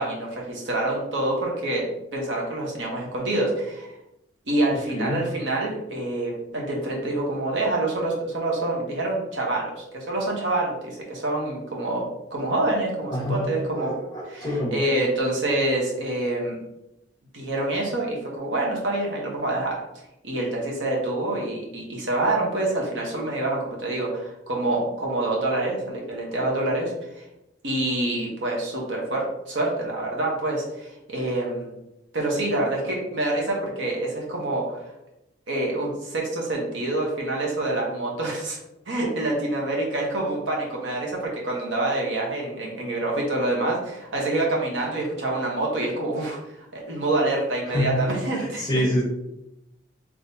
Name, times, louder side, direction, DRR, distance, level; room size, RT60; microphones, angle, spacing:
voice 1, 0.0-1.8 2.1-3.9 4.5-12.0 12.3-13.9 14.2-16.6 17.3-19.8 20.2-27.2 27.6-31.7 32.1-34.8 35.5-38.6 38.9-46.4 46.7-48.7, right 2 dB, 80° right, -2 dB, 1.1 m, -26 dB
voice 2, 13.1-13.4 13.7-14.8 47.7-48.0 48.3-49.0, equal, 20° left, -3 dB, 1.1 m, -26 dB
3.6 x 3.1 x 2.7 m, 0.87 s
head